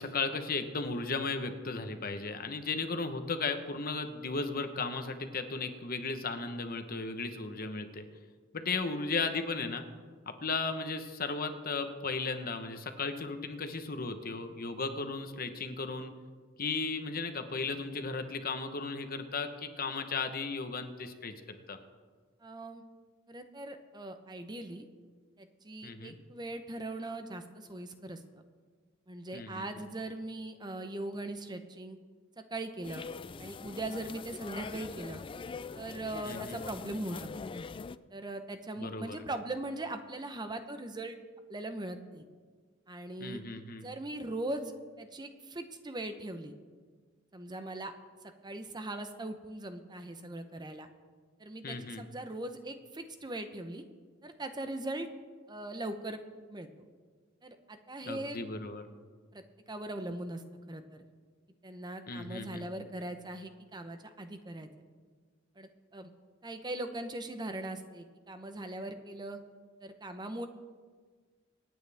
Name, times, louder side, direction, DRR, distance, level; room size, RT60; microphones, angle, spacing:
voice 1, 0.0-8.0 8.5-9.8 10.3-16.1 16.6-21.8 25.8-26.2 29.3-29.7 36.2-36.6 38.8-39.2 43.2-43.9 51.6-52.0 58.1-58.9 62.1-62.7, left 4 dB, 50° left, 8 dB, 1.0 m, -35 dB
voice 2, 22.4-22.8 23.3-24.9 25.4-28.2 29.1-32.0 32.4-33.0 33.4-35.2 35.7-37.5 38.1-41.2 41.5-42.2 42.9-43.4 43.8-46.5 47.3-47.9 48.4-50.9 51.4-53.8 54.2-55.1 55.5-56.2 56.5-56.9 57.4-58.4 59.3-60.4 60.7-61.0 61.6-64.7 65.6-66.1 66.4-69.4 69.8-70.5, right 2 dB, 20° right, 8 dB, 0.8 m, -40 dB
sound 1, 32.8-38.0, left 5 dB, 25° left, 0.3 m, -43 dB
26.0 x 9.1 x 3.5 m, 1.5 s
head